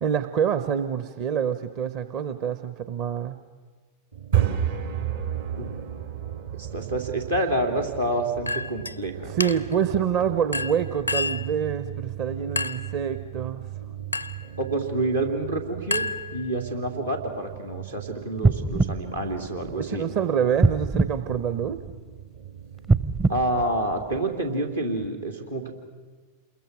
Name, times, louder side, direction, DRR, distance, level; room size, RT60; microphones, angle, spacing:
voice 1, 0.0-3.4 9.3-13.7 19.8-21.8, right 8 dB, 45° right, 11 dB, 0.8 m, -26 dB
sound 1, 4.1-24.0, right 10 dB, 65° right, 2.1 m, -35 dB
voice 2, 6.5-9.3 14.6-20.1 23.3-25.7, right 1 dB, 85° right, 2 dB, 3.1 m, -28 dB
Chink clink, 8.5-9.0 9.4-9.8 10.5-11.5 12.6-12.9 14.1-14.5 15.9-16.7, left 3 dB, 90° left, 0.6 m, -30 dB
sound 2, 18.4-20.1 20.6-22.1 22.8-24.5 25.0-25.1, right 3 dB, 15° right, 0.6 m, -25 dB
28.0 x 22.0 x 6.3 m, 1.4 s
figure-of-eight pair, 90°, 0 cm